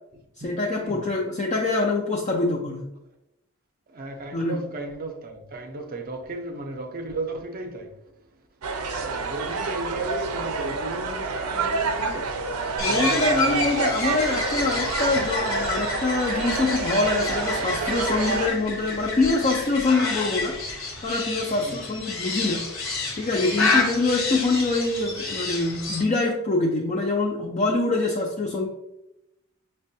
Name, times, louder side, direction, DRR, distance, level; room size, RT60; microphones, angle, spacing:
voice 1, 0.4-2.8 4.3-4.6 12.8-22.7 23.2-28.7, left 3 dB, 35° left, 0.4 m, -25 dB
voice 2, 3.9-7.9 8.9-12.4 12.9-13.8 21.6-21.9, right 2 dB, 40° right, 0.5 m, -35 dB
sound 1, 8.6-18.5, right 4 dB, 85° right, 0.4 m, -28 dB
sound 2, 12.8-26.0, left 3 dB, 65° left, 0.8 m, -30 dB
5.9 x 2.2 x 2.6 m
head